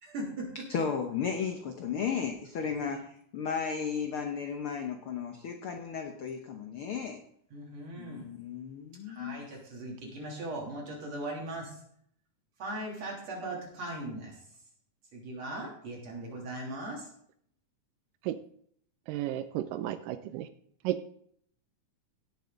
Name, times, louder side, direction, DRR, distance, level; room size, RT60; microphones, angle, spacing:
voice 1, 0.0-0.5 7.5-8.3 9.1-11.7 12.6-14.4 15.1-17.1, right 1 dB, 50° right, -2 dB, 4.2 m, -39 dB
voice 2, 0.7-7.2 8.0-9.5, left 6 dB, 90° left, 4 dB, 1.2 m, -34 dB
voice 3, 19.1-20.5 20.8-21.0, right 13 dB, 80° right, 11 dB, 2.2 m, -33 dB
17.5 x 7.6 x 3.9 m, 0.67 s
omnidirectional pair, 3.9 m